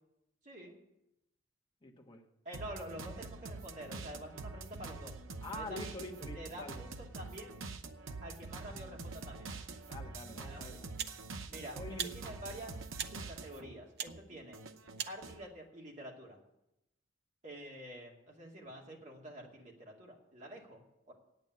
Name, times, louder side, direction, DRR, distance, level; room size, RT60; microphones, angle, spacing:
voice 1, 0.4-0.8 2.4-5.2 5.5-6.0 6.3-7.6 8.2-9.6 10.3-10.8 11.5-12.7 13.0-14.6 15.1-16.4 17.4-21.1, equal, 40° right, -1 dB, 2.5 m, -48 dB
voice 2, 1.8-2.2 5.4-6.8 9.9-10.9 11.7-12.3, left 1 dB, 25° left, 2 dB, 1.4 m, -46 dB
sound 1, 2.5-13.7 14.1-15.5, right 3 dB, 85° right, 0.9 m, -46 dB
sound 2, 10.0-10.2 11.0-11.2 12.0-12.2 13.0-13.2 14.0-14.2 15.0-15.2, right 8 dB, 55° right, 0.7 m, -39 dB
8.9 x 8.9 x 9.3 m, 0.87 s
head